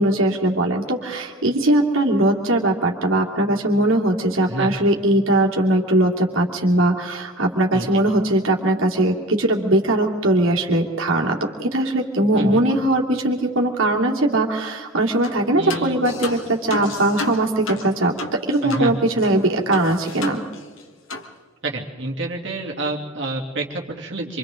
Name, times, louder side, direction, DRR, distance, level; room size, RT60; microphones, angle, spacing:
voice 1, 0.0-18.2 18.5-20.4, right 1 dB, 80° right, -1 dB, 2.8 m, -20 dB
voice 2, 4.4-4.7 7.7-8.0 12.3-12.6 15.5-16.0 18.6-18.9 21.6-24.4, right 2 dB, 60° right, -1 dB, 2.9 m, -28 dB
sound 1, 15.2-15.4 15.7-18.9 19.2-19.3 19.7-20.8 21.1-21.3, left 3 dB, 70° left, 1.6 m, -32 dB
27.0 x 25.5 x 3.8 m, 1.5 s
head